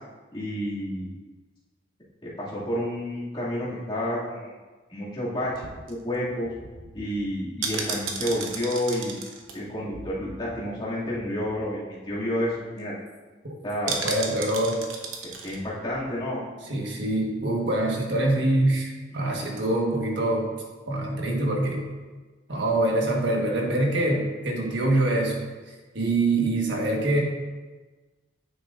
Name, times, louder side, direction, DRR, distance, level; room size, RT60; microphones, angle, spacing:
voice 1, 0.3-1.1 2.4-4.5 4.9-6.5 6.9-9.2 9.5-12.9 13.6-14.0 15.4-16.4 19.1-19.2, equal, 25° left, -9 dB, 2.4 m, -30 dB
sound 1, 5.5-10.8 11.1-11.2 11.4-11.7 12.1-12.2 12.4-12.8 13.9-15.6 15.9-16.0, right 4 dB, 90° right, 1.0 m, -35 dB
voice 2, 13.9-14.8 16.7-20.5 20.9-21.9 22.5-25.5 25.9-27.2, right 1 dB, 65° right, -1 dB, 1.5 m, -24 dB
9.4 x 7.1 x 2.6 m, 1.3 s
head